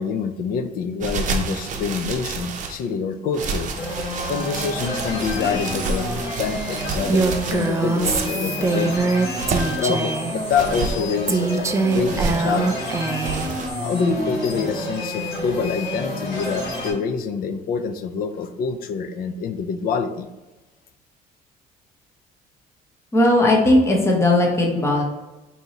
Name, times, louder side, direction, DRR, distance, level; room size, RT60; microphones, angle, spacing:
voice 1, 0.0-3.7 4.3-9.0 9.8-11.7 11.9-13.0 13.8-20.3, left 5 dB, 60° left, 9 dB, 0.4 m, -26 dB
sound 1, 1.0-2.8 3.3-8.4 9.1-9.9 10.5-11.0 11.9-12.5 13.2-13.7, right 4 dB, 50° right, 0.6 m, -29 dB
sound 2, 3.7-16.9, left 1 dB, 80° left, 1.4 m, -29 dB
Female speech woman speaking, 7.1-10.4 11.3-13.5, right 4 dB, 15° right, 0.3 m, -23 dB
voice 2, 23.1-25.0, left 1 dB, 15° left, -1 dB, 0.9 m, -17 dB
4.6 x 2.8 x 2.8 m, 1.1 s
cardioid pair, 110°, 17 cm